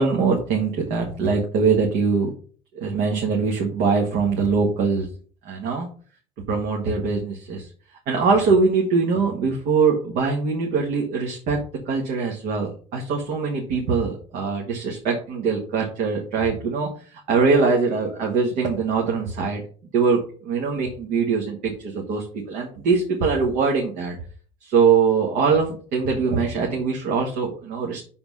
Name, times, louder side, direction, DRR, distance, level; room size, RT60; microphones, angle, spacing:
voice 1, 0.0-2.3 2.8-5.1 5.4-5.9 6.5-7.7 8.1-11.6 11.9-16.9 17.3-19.6 19.9-24.2 24.6-28.0, right 5 dB, 65° right, 0 dB, 1.6 m, -22 dB
5.8 x 4.3 x 5.4 m, 0.42 s
supercardioid pair, 85°, 15 cm